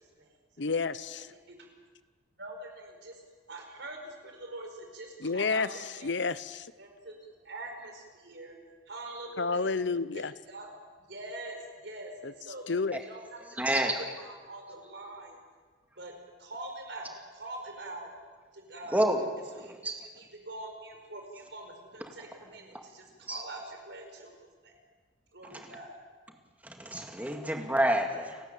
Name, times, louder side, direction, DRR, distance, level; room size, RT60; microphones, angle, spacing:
voice 1, 0.6-1.3 5.2-6.7 9.4-10.3 12.2-12.3 12.7-13.0, left 4 dB, 70° left, 16 dB, 0.8 m, -30 dB
voice 2, 2.4-3.1 3.5-6.1 6.8-7.1 7.4-8.5 8.9-9.7 10.1-10.7 11.1-12.6 13.1-13.4 13.7-13.9 14.2-15.4 16.0-16.1 16.4-18.1 18.5-19.0 19.6-19.7 20.1-24.3 24.6-24.7 25.3-26.0, right 2 dB, 65° right, 3 dB, 4.9 m, -44 dB
voice 3, 13.6-13.9 18.9-19.3 19.6-20.0 23.3-23.4 25.5-25.7 26.6-28.4, right 1 dB, 10° right, 3 dB, 2.1 m, -29 dB
29.5 x 12.5 x 9.1 m, 1.5 s
head